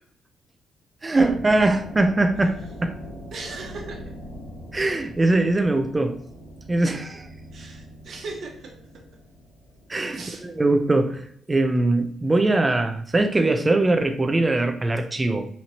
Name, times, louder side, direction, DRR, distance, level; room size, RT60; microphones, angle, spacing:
voice 1, 1.0-2.9 4.7-6.2 6.7-7.3 9.9-15.5, right 2 dB, 20° right, 0.5 m, -22 dB
sound 1, 1.1-11.0, equal, 75° left, 1.7 m, -42 dB
voice 2, 3.3-4.0 7.5-8.7 10.1-10.4, right 3 dB, 60° right, 1.1 m, -37 dB
4.3 x 2.7 x 3.0 m
cardioid pair, 90°, 0 cm